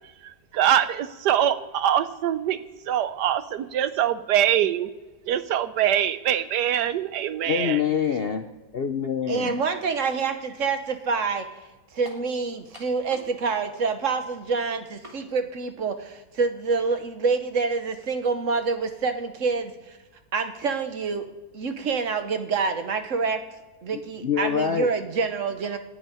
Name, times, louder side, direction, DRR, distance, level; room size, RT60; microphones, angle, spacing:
voice 1, 0.2-4.9 5.3-7.8, right 10 dB, 75° right, 12 dB, 1.3 m, -24 dB
sound 1, 6.7-7.0 7.9-8.0 12.0-12.3 12.7-13.4 13.7-13.8 15.0-15.2, equal, 20° right, 2.3 m, -45 dB
voice 2, 7.5-8.4 8.7-9.5 23.9-24.9, left 8 dB, 55° left, 7 dB, 0.6 m, -25 dB
voice 3, 9.3-11.5 11.9-20.0 20.3-21.3 21.5-23.4 23.8-25.8, right 4 dB, 50° right, 8 dB, 1.4 m, -27 dB
11.0 x 10.0 x 9.2 m, 1.2 s
omnidirectional pair, 1.8 m